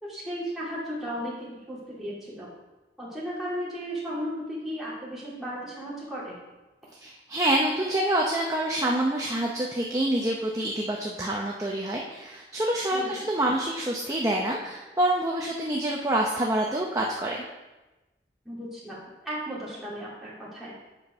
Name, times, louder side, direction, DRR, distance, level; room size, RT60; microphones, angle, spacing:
voice 1, 0.0-2.5 3.0-6.4 12.9-13.2 18.4-20.7, equal, ahead, -8 dB, 2.6 m, -35 dB
voice 2, 7.0-17.4, right 1 dB, 20° right, -2 dB, 0.6 m, -27 dB
8.3 x 5.2 x 5.6 m, 1.1 s
head